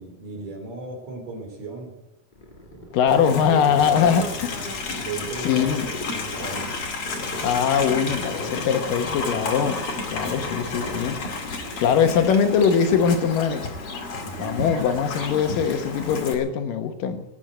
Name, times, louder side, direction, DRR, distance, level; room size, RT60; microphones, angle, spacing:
voice 1, 0.0-1.9 2.7-2.9 3.5-4.3 5.0-6.8 11.6-11.8 14.2-14.6, right 3 dB, 50° right, 3 dB, 4.1 m, -35 dB
sound 1, 2.3-11.8, equal, 20° left, 1.4 m, -42 dB
voice 2, 2.9-4.5 5.4-5.9 7.4-9.8 10.1-11.2 11.8-13.6 14.4-17.2, left 7 dB, 75° left, 8 dB, 2.8 m, -21 dB
Livestock farm animals working animals, 3.1-16.3, left 3 dB, 45° left, 2.9 m, -32 dB
18.5 x 8.3 x 9.1 m, 0.91 s
omnidirectional pair, 3.9 m